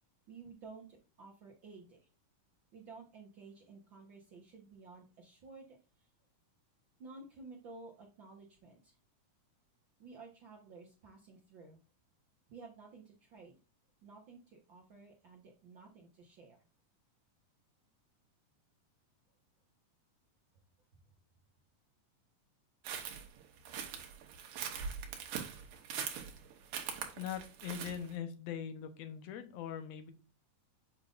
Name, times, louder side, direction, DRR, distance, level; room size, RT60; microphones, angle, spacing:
voice 1, 0.3-0.9 1.2-2.0 2.7-6.1 7.0-8.9 10.0-11.8 12.5-13.6 14.0-16.6, right 4 dB, 70° right, -1 dB, 1.1 m, -53 dB
sound 1, 22.9-28.1, right 7 dB, 90° right, 2.7 m, -42 dB
voice 2, 27.2-30.1, left 8 dB, 70° left, 8 dB, 1.7 m, -41 dB
8.0 x 5.1 x 2.5 m, 0.34 s
omnidirectional pair, 3.8 m